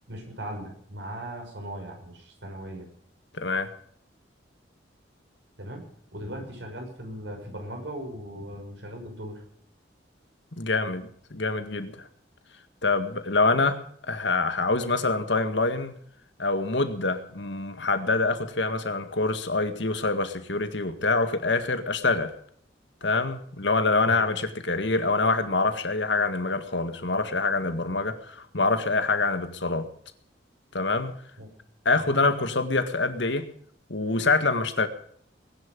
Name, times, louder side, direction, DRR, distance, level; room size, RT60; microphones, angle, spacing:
voice 1, 0.1-2.9 5.6-5.8 6.1-9.4 24.0-24.2 31.4-31.5 32.0-32.1, right 1 dB, 75° right, 4 dB, 6.2 m, -38 dB
voice 2, 3.3-3.7 10.5-12.1 12.8-13.8 14.1-15.9 16.4-22.3 23.0-29.9 30.7-31.1 31.9-33.5 33.9-34.9, left 3 dB, 75° left, 9 dB, 2.0 m, -25 dB
21.0 x 11.0 x 5.4 m, 0.62 s
head